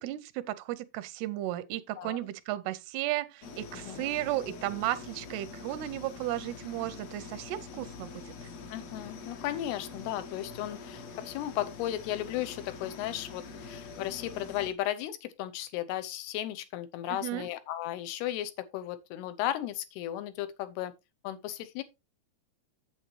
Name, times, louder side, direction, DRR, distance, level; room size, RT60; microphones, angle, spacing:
voice 1, 0.0-8.1 8.4-8.5 17.2-17.5, right 15 dB, 85° right, 2.7 m, -34 dB
sound 1, 3.4-14.7, left 4 dB, 60° left, 1.8 m, -45 dB
voice 2, 3.7-4.0 8.7-20.9 21.2-21.8, left 13 dB, 90° left, 2.9 m, -35 dB
8.5 x 7.9 x 3.1 m
omnidirectional pair, 4.5 m